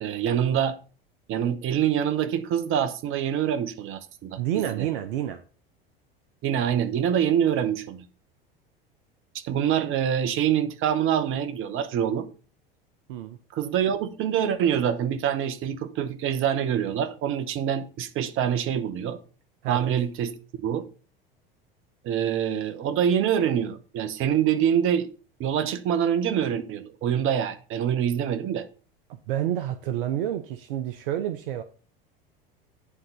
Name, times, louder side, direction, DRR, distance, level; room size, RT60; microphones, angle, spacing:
voice 1, 0.0-0.8 1.3-4.9 6.4-8.1 9.3-12.3 13.5-19.2 19.7-20.3 20.6-20.8 22.0-25.1 25.4-28.7, right 9 dB, 45° right, 1.1 m, -25 dB
voice 2, 4.4-5.4 13.1-13.4 19.6-19.8 29.3-31.6, right 11 dB, 65° right, 0.8 m, -29 dB
9.7 x 3.9 x 5.6 m
hypercardioid pair, 80°, 29 cm